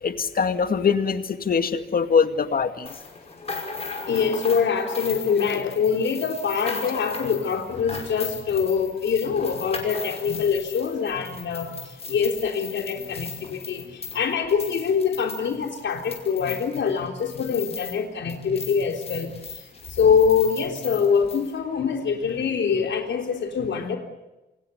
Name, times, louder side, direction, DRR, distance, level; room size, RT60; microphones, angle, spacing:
voice 1, 0.0-2.9 10.3-10.4, left 6 dB, 50° left, 9 dB, 2.2 m, -23 dB
sound 1, 2.9-18.0 18.3-21.5, left 5 dB, 35° left, 5.8 m, -37 dB
voice 2, 4.1-19.3 19.9-24.0, left 6 dB, 80° left, 4 dB, 3.7 m, -24 dB
28.5 x 25.5 x 7.0 m, 1.0 s
wide cardioid pair, 165°, 19 cm